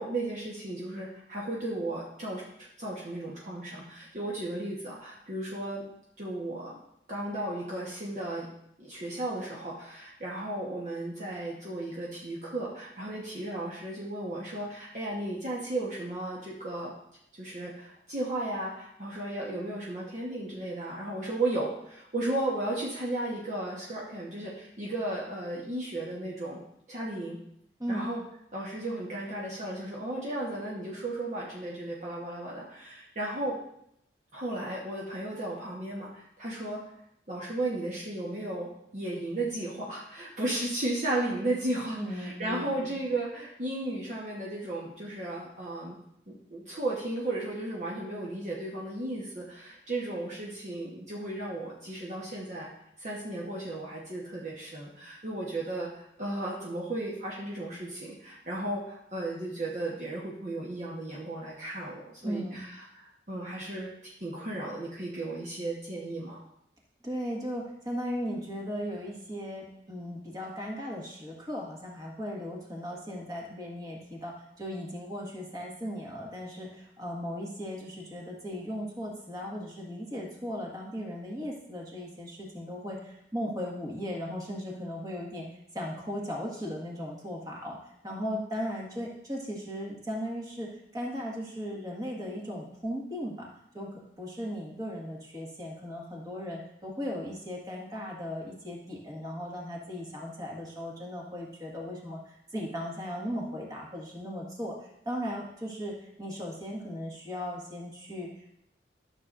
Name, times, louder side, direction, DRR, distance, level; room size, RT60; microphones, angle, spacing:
voice 1, 0.0-5.8 6.2-6.8 7.1-8.5 8.8-16.9 17.3-26.6 26.9-27.4 27.9-28.2 28.5-33.6 34.3-36.8 37.3-46.0 46.3-52.7 53.0-66.4, right 1 dB, 45° right, -4 dB, 1.1 m, -35 dB
voice 2, 27.8-28.1 41.9-43.0 62.2-62.7 67.0-85.5 85.7-87.8 88.0-93.5 93.7-104.8 105.0-108.5, equal, 20° right, -2 dB, 1.6 m, -37 dB
13.0 x 6.8 x 2.5 m, 0.77 s
head